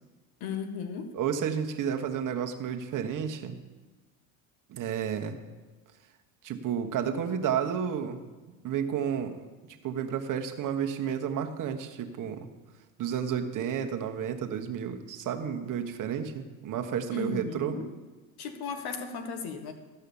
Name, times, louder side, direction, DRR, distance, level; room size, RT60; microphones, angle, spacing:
voice 1, 0.4-1.1 17.1-17.9 18.4-19.7, left 5 dB, 60° left, 7 dB, 1.4 m, -36 dB
voice 2, 1.1-3.6 4.7-5.4 6.4-8.2 8.6-9.5 9.8-12.5 13.0-17.8, right 8 dB, 45° right, 5 dB, 1.3 m, -31 dB
13.0 x 5.6 x 7.0 m, 1.3 s
supercardioid pair, 95°, 44 cm